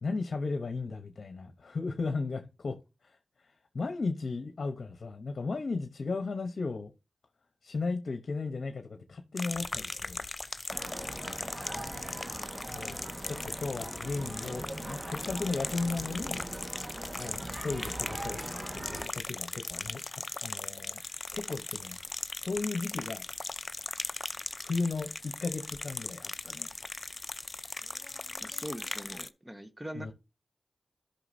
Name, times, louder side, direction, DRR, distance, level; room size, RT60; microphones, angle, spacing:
voice 1, 0.0-2.8 3.0-6.9 7.6-10.2 11.7-12.2 12.6-16.5 17.2-21.0 21.3-22.0 22.4-23.2 24.6-26.7 29.9-30.1, left 3 dB, 75° left, 0.8 m, -36 dB
sound 1, 9.4-29.3, left 2 dB, 45° left, 0.5 m, -39 dB
sound 2, 10.7-19.1, right 1 dB, 35° right, 1.5 m, -41 dB
voice 2, 28.4-30.1, equal, 15° right, 1.3 m, -42 dB
13.0 x 5.7 x 2.7 m
cardioid pair, 45°, 0 cm